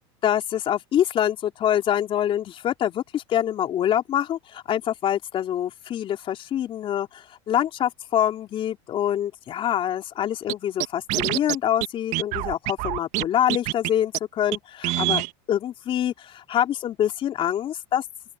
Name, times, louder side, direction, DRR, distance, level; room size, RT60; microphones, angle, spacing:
voice 1, 0.2-18.0, left 10 dB, 40° left, 3.7 m, -25 dB
Scratching (performance technique), 10.5-10.6 10.8-11.6 11.8-11.9 12.1-13.2 13.5-13.9 14.1-14.2 14.5-14.6 14.8-15.3, right 19 dB, 55° right, 1.9 m, -25 dB
open air
supercardioid pair, 110°, 14 cm